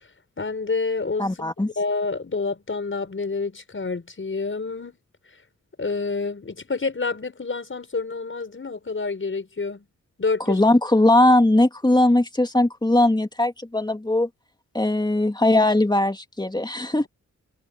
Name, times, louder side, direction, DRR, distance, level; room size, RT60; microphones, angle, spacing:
voice 1, 0.4-1.3 1.8-5.0 5.8-9.9 10.2-10.6, left 4 dB, 40° left, 5.9 m, -28 dB
voice 2, 1.2-1.7 10.5-14.3 14.7-17.0, left 1 dB, 15° left, 2.6 m, -19 dB
cardioid pair, 65°, 31 cm